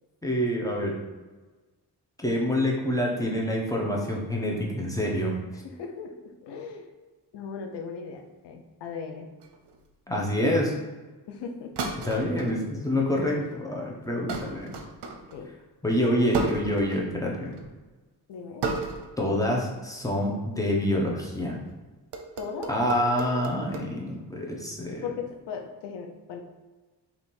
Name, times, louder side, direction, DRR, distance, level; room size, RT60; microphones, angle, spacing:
voice 1, 0.2-1.0 2.2-5.4 10.1-10.7 12.0-14.7 15.8-17.6 19.2-21.6 22.7-25.0, left 1 dB, 10° left, -2 dB, 0.9 m, -27 dB
voice 2, 5.5-6.9 7.3-9.3 11.3-11.7 15.3-15.5 18.3-18.7 22.4-22.7 25.0-26.4, left 6 dB, 75° left, 3 dB, 0.8 m, -38 dB
sound 1, 9.4-9.8 11.8-12.6 13.1-13.5 14.3-15.4 16.3-17.2 17.5-17.7 18.6-19.2 19.5-19.8 21.4-21.7 22.1-23.9, right 4 dB, 75° right, 0.7 m, -34 dB
3.5 x 2.9 x 4.3 m, 1.3 s
cardioid pair, 85°, 41 cm